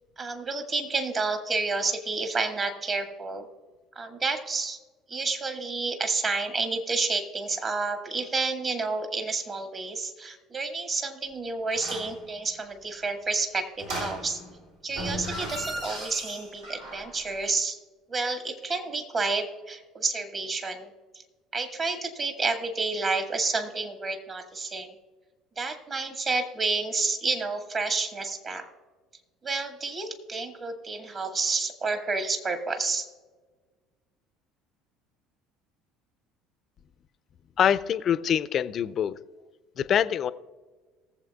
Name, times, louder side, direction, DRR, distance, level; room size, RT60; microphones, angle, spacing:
voice 1, 0.2-3.5 4.0-4.8 5.1-14.4 14.8-17.8 18.1-20.9 21.1-21.2 21.5-24.9 25.6-28.7 29.4-33.1, right 3 dB, 40° right, 6 dB, 1.8 m, -30 dB
sound 1, 11.7-12.2 13.8-14.6 14.9-17.2 17.4-17.5, right 1 dB, 75° right, 3.4 m, -36 dB
voice 2, 37.6-39.2 39.8-40.3, left 9 dB, 45° left, 16 dB, 0.4 m, -24 dB
19.5 x 7.5 x 2.3 m, 1.4 s
hypercardioid pair, 65°, 0 cm